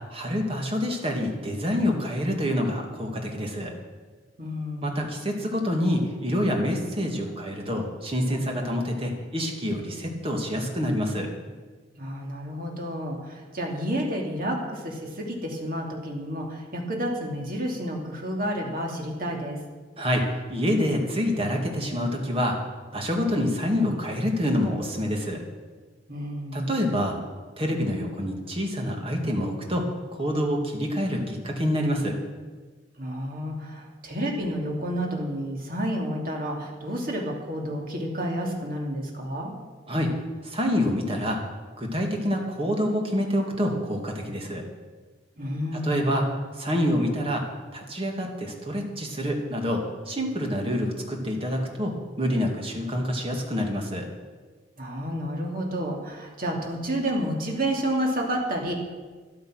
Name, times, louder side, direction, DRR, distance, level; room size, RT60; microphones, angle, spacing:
voice 1, 0.1-3.7 4.8-11.3 20.0-22.6 22.9-25.4 26.5-27.2 27.6-32.2 39.9-40.1 40.4-41.4 41.8-44.6 45.8-47.4 47.7-54.1, equal, 30° right, 1 dB, 2.2 m, -27 dB
voice 2, 4.4-5.2 12.0-19.6 26.1-26.7 33.0-39.5 45.4-46.2 54.8-58.7, equal, 50° right, 0 dB, 2.7 m, -30 dB
13.0 x 12.0 x 6.4 m, 1.4 s
head